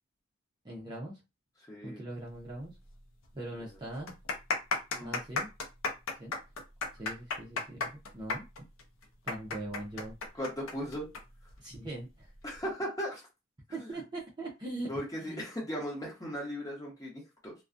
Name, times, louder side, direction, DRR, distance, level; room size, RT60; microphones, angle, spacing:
voice 1, 0.6-1.2 1.8-2.8 3.3-4.2 5.0-5.5 6.2-6.4 6.9-8.5 9.2-10.2 11.6-12.3 13.7-14.9 15.2-15.4, right 1 dB, 20° right, -3 dB, 0.5 m, -41 dB
voice 2, 1.7-2.0 3.6-3.8 4.9-5.2 10.4-11.1 12.4-13.3 13.7-14.0 14.9-17.5, equal, 15° left, -3 dB, 0.9 m, -37 dB
sound 1, 2.9-3.0 3.2-3.3 3.9-11.2 11.5-11.6 12.3-12.6, left 3 dB, 85° left, 0.5 m, -34 dB
2.3 x 2.2 x 2.5 m, 0.25 s
head